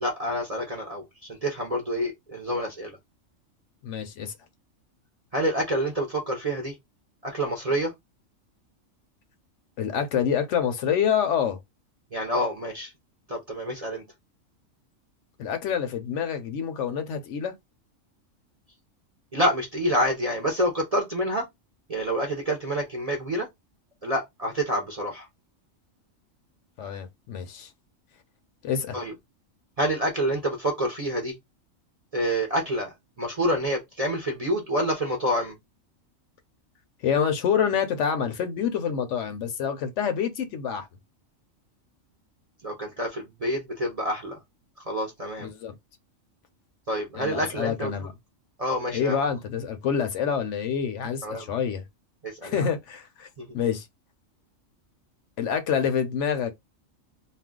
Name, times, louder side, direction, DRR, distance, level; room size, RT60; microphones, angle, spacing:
voice 1, 0.0-3.0 5.3-6.8 7.2-7.9 12.1-12.9 13.3-14.0 19.3-21.5 21.9-23.5 24.0-25.3 28.9-29.1 29.8-31.4 32.1-35.6 42.6-44.4 44.8-45.5 46.9-47.9 48.6-49.2 51.2-51.5 52.2-52.7 53.4-53.5, equal, 45° right, 0.5 m, -27 dB
voice 2, 3.8-4.3 9.8-11.6 15.4-17.5 26.8-27.7 28.6-29.0 37.0-40.9 45.4-45.7 47.1-48.1 48.9-51.8 52.4-53.3 53.5-53.9 55.4-56.5, left 7 dB, 70° left, 0.9 m, -27 dB
2.5 x 2.1 x 3.6 m
omnidirectional pair, 1.4 m